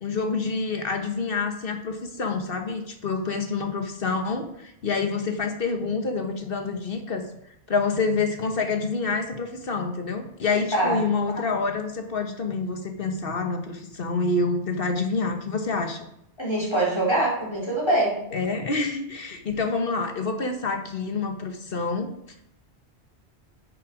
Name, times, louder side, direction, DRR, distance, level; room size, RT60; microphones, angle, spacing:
voice 1, 0.0-7.2 7.7-16.1 18.3-22.1, left 4 dB, 55° left, 5 dB, 1.3 m, -27 dB
voice 2, 16.4-18.2, right 1 dB, 25° left, -5 dB, 3.8 m, -23 dB
10.0 x 6.7 x 5.0 m, 0.78 s
omnidirectional pair, 1.2 m